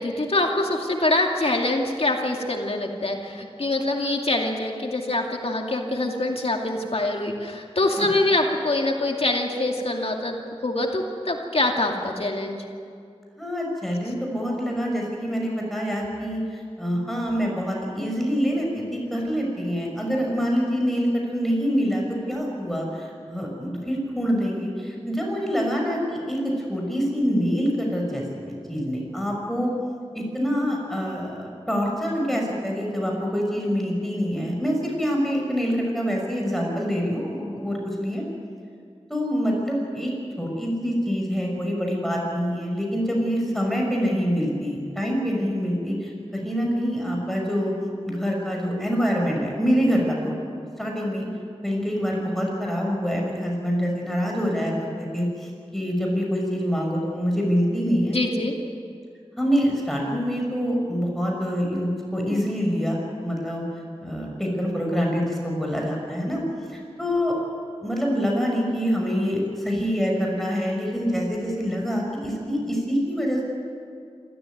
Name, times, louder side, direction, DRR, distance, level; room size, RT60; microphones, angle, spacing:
voice 1, 0.0-10.4 10.6-12.6 58.1-58.6, left 2 dB, 70° left, 1 dB, 2.4 m, -24 dB
voice 2, 13.4-29.7 30.1-38.2 39.1-47.7 48.0-50.3 50.8-51.3 51.6-58.2 59.4-63.6 64.0-66.4 66.7-67.3 67.8-73.4, equal, ahead, -1 dB, 6.3 m, -25 dB
27.0 x 14.0 x 9.4 m, 2.3 s
wide cardioid pair, 55°, 11 cm